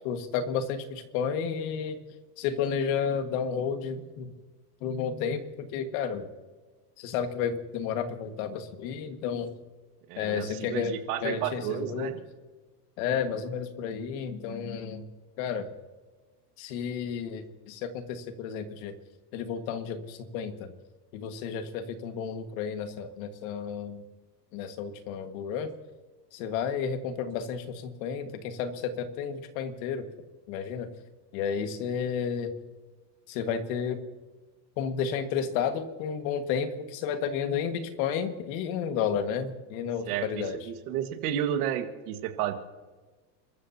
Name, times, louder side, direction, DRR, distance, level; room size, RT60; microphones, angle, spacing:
voice 1, 0.0-2.0 2.4-4.3 4.8-6.3 7.0-9.5 10.2-10.9 11.2-12.1 13.0-15.1 15.4-15.7 16.6-18.9 19.3-20.7 21.1-24.0 24.5-25.7 26.3-30.1 30.5-30.9 31.3-32.5 33.3-34.0 34.8-40.6, left 7 dB, 55° left, 7 dB, 1.9 m, -32 dB
voice 2, 10.1-12.1 40.1-42.5, right 10 dB, 65° right, 6 dB, 1.9 m, -32 dB
29.5 x 14.0 x 2.9 m, 1.3 s
supercardioid pair, 165°, 49 cm